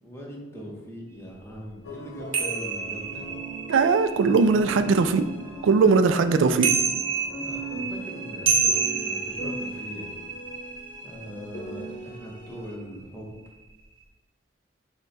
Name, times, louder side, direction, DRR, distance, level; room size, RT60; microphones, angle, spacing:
voice 1, 0.0-3.2 4.3-4.8 7.3-10.1 11.0-13.3, equal, 15° left, -3 dB, 0.8 m, -40 dB
sound 1, 1.8-12.7, right 1 dB, 70° left, 0.8 m, -40 dB
sound 2, 2.3-5.8 6.4-12.4 12.7-13.0, right 5 dB, 25° right, 0.5 m, -29 dB
voice 2, 3.7-5.2 5.6-6.7, right 4 dB, 85° right, 10 dB, 0.3 m, -20 dB
6.2 x 2.1 x 4.0 m, 1.1 s
head